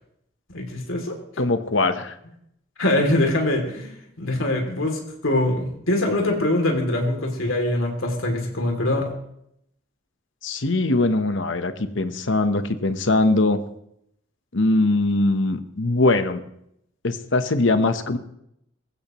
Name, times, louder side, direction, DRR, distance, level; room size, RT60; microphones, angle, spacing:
voice 1, 0.5-1.1 2.8-9.1, left 1 dB, 85° left, 2 dB, 2.9 m, -23 dB
voice 2, 1.4-2.2 10.4-13.6 14.5-16.4 17.0-18.2, left 2 dB, 70° left, 9 dB, 1.0 m, -21 dB
19.0 x 15.5 x 3.1 m, 0.75 s
head